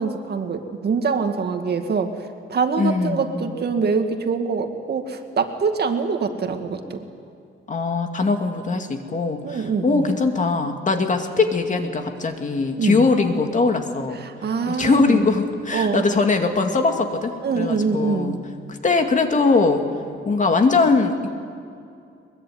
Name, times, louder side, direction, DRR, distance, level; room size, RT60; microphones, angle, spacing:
voice 1, 0.0-2.1 2.5-7.0 9.4-10.1 12.8-13.0 14.2-15.2 15.7-16.1 17.4-18.3, right 5 dB, 50° right, 6 dB, 2.2 m, -24 dB
voice 2, 2.8-3.5 7.7-14.2 14.7-18.4 18.8-19.8 20.3-21.3, left 4 dB, 40° left, 5 dB, 2.3 m, -21 dB
22.5 x 22.5 x 9.4 m, 2.5 s
cardioid pair, 135°, 21 cm